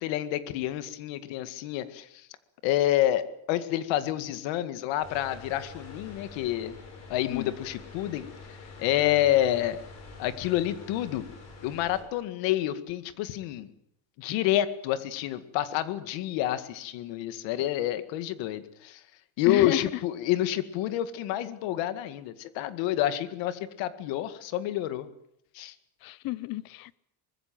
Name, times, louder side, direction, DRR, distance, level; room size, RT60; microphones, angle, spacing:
voice 1, 0.0-2.1 2.6-6.8 7.1-8.3 8.8-9.8 10.2-11.2 11.6-13.7 14.2-19.0 19.4-25.1 25.5-25.7, left 13 dB, 85° left, 11 dB, 2.2 m, -28 dB
sound 1, 5.0-12.0, left 3 dB, 35° left, 7.0 m, -46 dB
voice 2, 19.5-19.8 26.0-27.0, left 18 dB, 50° left, 19 dB, 0.9 m, -31 dB
24.5 x 20.5 x 7.9 m, 0.76 s
cardioid pair, 180°, 44 cm